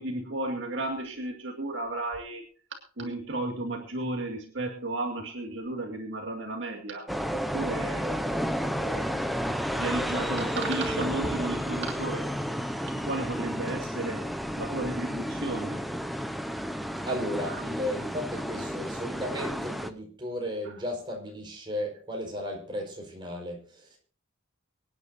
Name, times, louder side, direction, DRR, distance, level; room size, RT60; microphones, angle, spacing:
voice 1, 0.0-2.4 3.0-8.1 8.8-9.5 9.8-12.3 13.0-15.8, right 2 dB, 60° right, 2.2 m, -34 dB
ambiance rue stereo, 7.1-19.9, equal, ahead, 0.8 m, -32 dB
voice 2, 17.0-24.0, equal, 25° right, 4.7 m, -34 dB
25.0 x 9.8 x 2.7 m
head